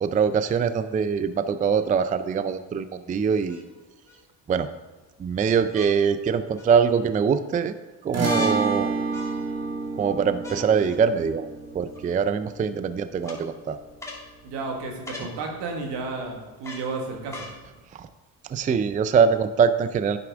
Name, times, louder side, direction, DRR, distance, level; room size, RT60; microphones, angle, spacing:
voice 1, 0.0-3.6 4.5-4.7 5.2-7.7 8.0-9.0 10.0-11.5 11.7-13.8 17.9-18.1 18.4-20.2, right 6 dB, 20° right, 12 dB, 0.3 m, -23 dB
sound 1, 1.7-1.8 3.5-4.2 5.7-5.9 6.6-7.1 8.2-8.6 9.1-9.7 10.4-11.0 11.9-12.0 13.2-13.4 14.0-14.3 15.0-15.3 16.6-16.9 17.3-17.6 18.4-18.5, left 2 dB, 5° left, 2.3 m, -40 dB
sound 2, 8.1-14.7, right 3 dB, 35° right, 1.8 m, -30 dB
voice 2, 14.4-17.5, right 3 dB, 80° right, 2 dB, 1.6 m, -32 dB
9.6 x 5.9 x 3.5 m, 1.2 s
supercardioid pair, 70°, 42 cm